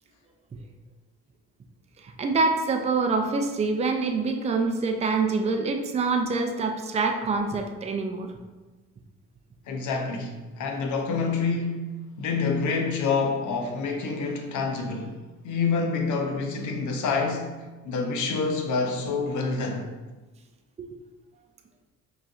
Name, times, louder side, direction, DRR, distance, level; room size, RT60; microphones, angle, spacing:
voice 1, 2.2-8.3 20.8-20.9, right 4 dB, 20° right, 0.4 m, -25 dB
voice 2, 9.7-19.9, left 4 dB, 75° left, 0.7 m, -27 dB
4.9 x 3.2 x 2.4 m
cardioid pair, 90°, 30 cm